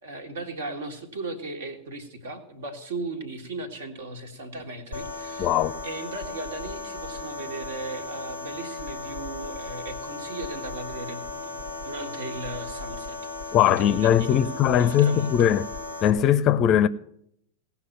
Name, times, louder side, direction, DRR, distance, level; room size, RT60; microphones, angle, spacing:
voice 1, 0.0-5.6 5.8-13.2 13.4-14.5 14.7-15.5, right 2 dB, 60° right, 1.8 m, -37 dB
sound 1, 4.9-16.1, left 3 dB, 85° right, 1.7 m, -36 dB
voice 2, 5.4-5.8 13.5-15.6 16.0-16.9, left 10 dB, 35° left, 0.6 m, -20 dB
17.5 x 5.9 x 8.8 m
figure-of-eight pair, 90°, 0 cm